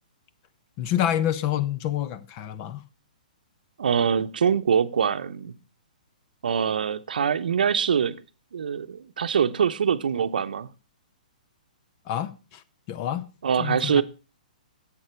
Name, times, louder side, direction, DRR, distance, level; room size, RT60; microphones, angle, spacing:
voice 1, 0.8-2.8 12.1-12.6 12.9-13.3 13.6-14.0, left 11 dB, 35° left, 0.8 m, -27 dB
voice 2, 3.8-5.5 6.4-8.2 8.5-10.7 13.4-14.0, right 7 dB, 80° right, 0.8 m, -24 dB
11.0 x 7.6 x 4.5 m
hypercardioid pair, 145°, 5 cm